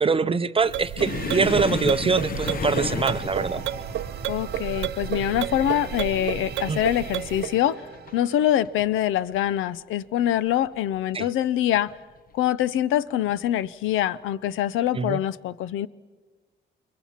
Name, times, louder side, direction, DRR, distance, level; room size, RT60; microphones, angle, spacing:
voice 1, 0.0-3.6 6.7-6.8 11.1-11.3 14.9-15.2, right 5 dB, 30° right, 12 dB, 0.6 m, -24 dB
sound 1, 0.6-7.6, right 12 dB, 70° right, 0.6 m, -32 dB
sound 2, 1.0-8.2 8.5-8.9 9.2-9.4 10.2-10.8 11.7-11.9 13.3-13.5, left 6 dB, 45° left, 0.8 m, -33 dB
sound 3, 1.1-8.5, right 8 dB, 55° right, 1.0 m, -40 dB
voice 2, 4.3-7.8 8.1-12.0 12.3-15.9, left 12 dB, 85° left, 18 dB, 0.7 m, -24 dB
29.0 x 21.5 x 5.8 m, 1.3 s
cardioid pair, 90°, 20 cm